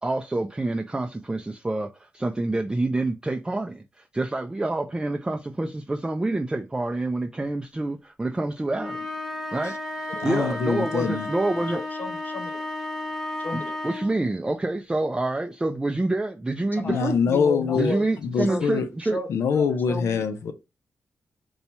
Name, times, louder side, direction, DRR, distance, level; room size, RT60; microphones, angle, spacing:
voice 1, 0.0-9.1 9.5-11.8 13.8-17.2 17.7-19.2, right 2 dB, 15° right, 0.4 m, -27 dB
sound 1, 8.7-14.2, left 2 dB, 5° left, 1.0 m, -33 dB
voice 2, 10.2-11.3 16.8-17.9 18.2-18.9 19.3-20.5, left 6 dB, 75° left, 0.5 m, -24 dB
voice 3, 11.7-12.6 13.4-13.7 16.7-17.0 17.3-18.1 18.4-18.6 19.1-20.2, left 3 dB, 40° left, 0.9 m, -33 dB
2.8 x 2.3 x 4.2 m
cardioid pair, 60°, 5 cm